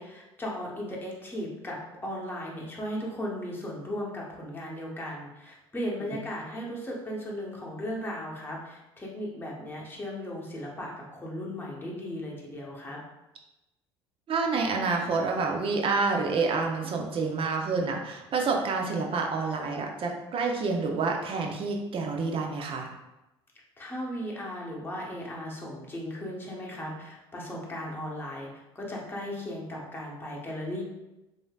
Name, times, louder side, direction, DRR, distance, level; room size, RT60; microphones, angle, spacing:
voice 1, 0.0-13.0 23.8-30.8, equal, 15° left, -3 dB, 1.0 m, -36 dB
voice 2, 14.3-22.9, right 4 dB, 40° right, 1 dB, 0.6 m, -28 dB
3.1 x 2.7 x 2.3 m, 0.98 s
hypercardioid pair, 70°, 14 cm